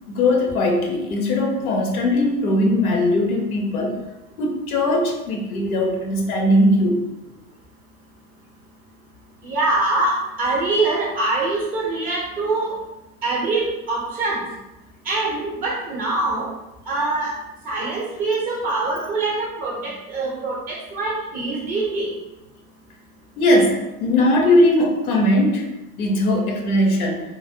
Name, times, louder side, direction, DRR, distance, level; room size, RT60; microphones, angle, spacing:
voice 1, 0.1-4.0 4.4-7.0 23.4-25.7 26.0-27.2, left 1 dB, 65° left, 1 dB, 0.8 m, -19 dB
voice 2, 9.4-12.7 13.2-14.4 15.0-16.5 16.9-17.3 17.6-22.1, right 2 dB, 20° right, -4 dB, 0.4 m, -24 dB
3.3 x 2.0 x 2.6 m, 0.96 s
figure-of-eight pair, 85°, 47 cm